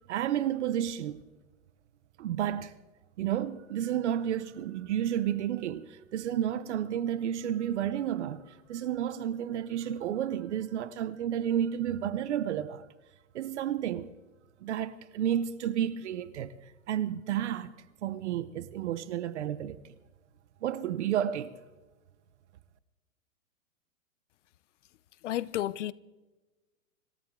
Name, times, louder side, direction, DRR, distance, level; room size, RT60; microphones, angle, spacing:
voice 1, 0.1-1.2 2.2-2.7 3.2-12.9 13.3-14.1 14.6-16.5 16.9-17.7 18.0-19.9 20.6-21.5, right 10 dB, 55° right, 0.9 m, -31 dB
voice 2, 25.2-25.9, left 13 dB, 60° left, 0.7 m, -31 dB
26.5 x 14.0 x 3.8 m
hypercardioid pair, 165°, 42 cm